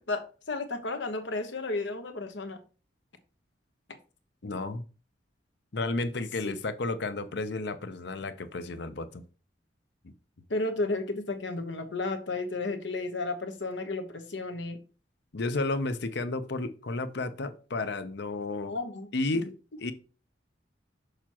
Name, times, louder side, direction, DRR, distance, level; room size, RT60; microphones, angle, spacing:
voice 1, 0.0-2.6 6.4-6.5 10.5-14.8 18.6-19.1, left 3 dB, 90° left, 1.1 m, -33 dB
voice 2, 4.4-4.8 5.7-9.3 15.3-18.7 19.1-19.5 19.8-19.9, left 2 dB, 65° left, 0.7 m, -32 dB
6.6 x 5.9 x 3.0 m
head